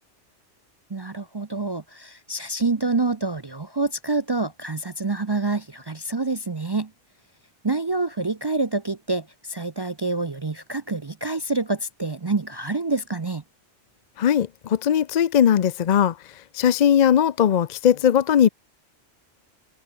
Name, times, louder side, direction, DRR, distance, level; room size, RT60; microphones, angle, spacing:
voice 1, 0.9-6.9 7.6-13.4, right 3 dB, 30° right, 0.5 m, -27 dB
voice 2, 14.2-16.1 16.5-18.5, left 9 dB, 50° left, 0.5 m, -19 dB
omnidirectional pair, 1.2 m